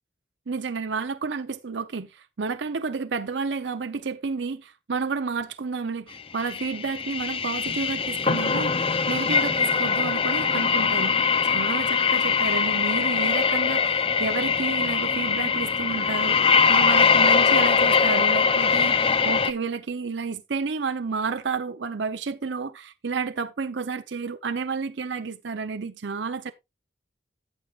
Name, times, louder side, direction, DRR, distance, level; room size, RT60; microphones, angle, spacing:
voice 1, 0.5-11.1 11.4-26.5, right 5 dB, 80° right, 0.6 m, -31 dB
sound 1, 6.4-19.5, left 5 dB, 30° left, 0.5 m, -22 dB
13.5 x 7.4 x 2.4 m
head